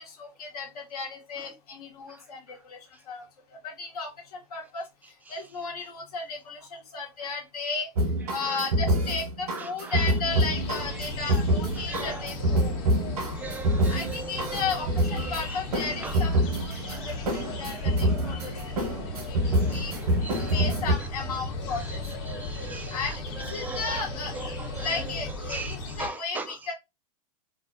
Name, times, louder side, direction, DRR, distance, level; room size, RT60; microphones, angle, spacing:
voice 1, 0.0-2.8 3.1-3.2 3.6-4.8 5.3-7.9 8.3-12.7 13.9-18.5 19.1-19.9 20.4-22.0 22.9-23.2 23.5-26.7, left 4 dB, 80° left, 0.9 m, -34 dB
sound 1, 8.0-20.9, right 1 dB, 90° right, 1.0 m, -26 dB
voice 2, 9.5-10.0 11.7-12.3 12.7-12.8 13.3-14.6 15.1-15.6 16.0-16.2 16.7-17.2 17.7-18.4 19.6-20.7 21.9-22.0 22.3-24.0 24.3-25.1 25.5-26.6, right 3 dB, 10° right, 0.3 m, -40 dB
sound 2, 10.3-26.1, left 2 dB, 45° left, 0.8 m, -37 dB
2.5 x 2.0 x 2.5 m
hypercardioid pair, 115°, 19 cm